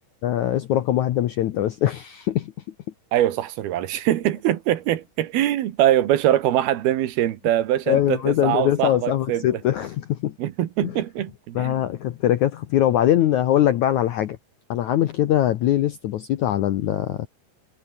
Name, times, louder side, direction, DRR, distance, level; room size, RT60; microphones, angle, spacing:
voice 1, 0.2-2.5 7.9-10.4 10.8-10.9 11.5-14.4 14.7-17.3, left 12 dB, 70° left, 1.8 m, -22 dB
voice 2, 3.1-9.4 10.4-11.7, right 12 dB, 75° right, 3.3 m, -23 dB
omnidirectional pair, 4.6 m